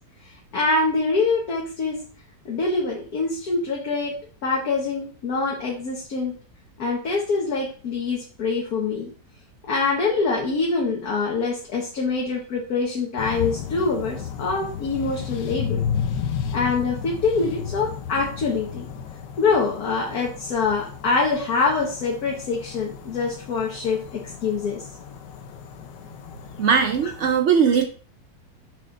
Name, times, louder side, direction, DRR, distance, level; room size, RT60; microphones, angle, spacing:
voice 1, 0.2-2.0 2.4-4.1 4.4-6.3 6.8-9.1 9.7-15.8 16.5-18.8 19.4-24.8, left 4 dB, 60° left, -2 dB, 1.6 m, -24 dB
sound 1, 13.2-27.3, left 8 dB, 85° left, 1.4 m, -33 dB
voice 2, 26.6-27.9, right 7 dB, 70° right, 5 dB, 0.6 m, -19 dB
6.5 x 6.3 x 2.5 m, 0.39 s
omnidirectional pair, 1.9 m